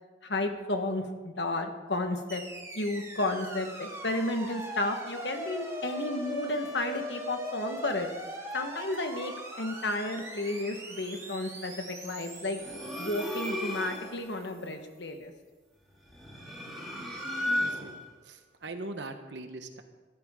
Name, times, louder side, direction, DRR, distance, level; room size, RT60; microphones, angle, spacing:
voice 1, 0.2-2.4 2.7-8.1 8.5-9.3 9.6-12.6 13.0-15.3, left 2 dB, 75° left, 5 dB, 1.5 m, -32 dB
sound 1, 2.3-14.5, right 1 dB, 15° right, 1.8 m, -41 dB
sound 2, 12.6-14.2 16.0-18.1, left 1 dB, ahead, 2.8 m, -34 dB
voice 2, 17.0-17.9 18.2-19.8, right 2 dB, 80° right, 6 dB, 1.2 m, -42 dB
15.0 x 12.5 x 3.8 m, 1.3 s
head